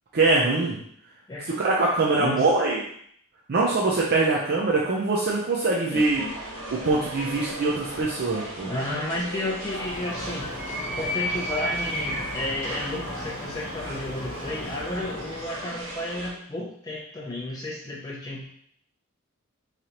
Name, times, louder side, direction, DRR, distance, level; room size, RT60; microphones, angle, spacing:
voice 1, 0.1-0.8 1.6-2.8 3.5-6.2 6.7-8.7, right 3 dB, 45° right, -4 dB, 0.5 m, -23 dB
voice 2, 1.3-1.6 2.2-2.5 5.9-6.3 8.6-10.5 10.9-18.5, left 1 dB, 15° left, -5 dB, 0.5 m, -32 dB
sound 1, 5.9-16.3, right 1 dB, 80° right, 1.4 m, -37 dB
Animal, 9.7-15.6, equal, 45° left, 0.9 m, -34 dB
3.8 x 3.2 x 2.9 m, 0.66 s
head